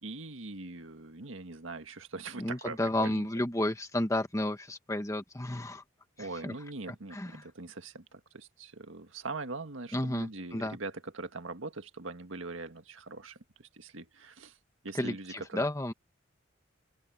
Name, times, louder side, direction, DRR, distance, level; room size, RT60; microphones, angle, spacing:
voice 1, 0.0-3.3 6.2-14.6 14.8-15.7, right 3 dB, 80° right, 1.7 m, -42 dB
voice 2, 2.4-5.8 6.2-6.5 7.1-7.4 9.9-10.8 14.9-15.9, left 1 dB, 15° left, 1.2 m, -32 dB
open air
head